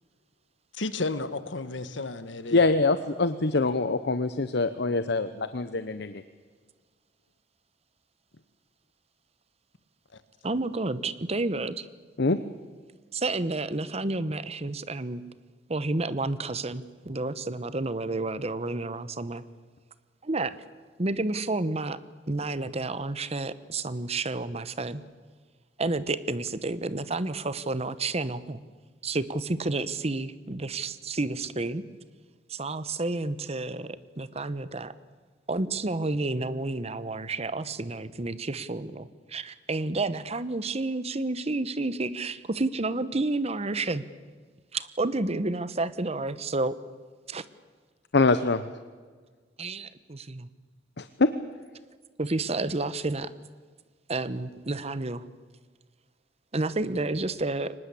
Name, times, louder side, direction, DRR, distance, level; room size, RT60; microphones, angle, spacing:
voice 1, 0.7-2.6 10.1-10.2, left 3 dB, 75° left, 12 dB, 1.5 m, -33 dB
voice 2, 2.5-6.2 12.2-12.4 48.1-48.6 51.0-51.3, left 3 dB, 60° left, 12 dB, 0.8 m, -24 dB
voice 3, 10.4-11.9 13.1-15.2 15.7-19.4 20.2-20.5 21.0-22.0 22.3-25.0 25.8-28.6 29.0-31.8 32.5-34.9 35.5-44.0 44.7-46.8 47.3-47.4 49.6-50.5 52.2-53.3 54.1-55.2 56.5-57.7, right 2 dB, 35° right, 15 dB, 1.0 m, -30 dB
24.0 x 20.0 x 8.4 m, 1.5 s
head